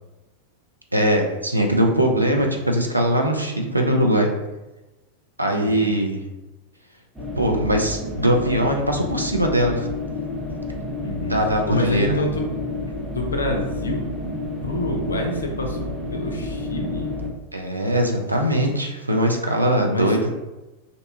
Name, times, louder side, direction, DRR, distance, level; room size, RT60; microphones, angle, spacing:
voice 1, 0.9-4.3 5.4-6.2 7.4-9.9 11.3-12.3 17.5-20.2, equal, 85° right, 1 dB, 0.4 m, -21 dB
voice 2, 5.5-5.9 11.0-11.3 11.7-12.4 13.0-14.1 14.6-17.2 19.9-20.2, left 1 dB, 75° left, 1 dB, 0.4 m, -27 dB
sound 1, 7.2-17.3, left 2 dB, ahead, 0.6 m, -30 dB
2.6 x 2.2 x 2.6 m, 1.0 s
figure-of-eight pair, 90°, 0 cm